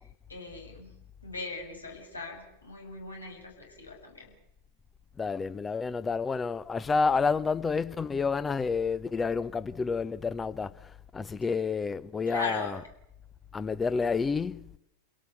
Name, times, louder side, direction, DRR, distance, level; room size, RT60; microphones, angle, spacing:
voice 1, 0.3-0.9 1.2-4.3 12.3-12.7, left 3 dB, 80° left, 6.8 m, -39 dB
voice 2, 5.2-12.8 13.5-14.7, left 5 dB, 15° left, 0.9 m, -29 dB
29.0 x 18.0 x 7.1 m
figure-of-eight pair, 90°, 0 cm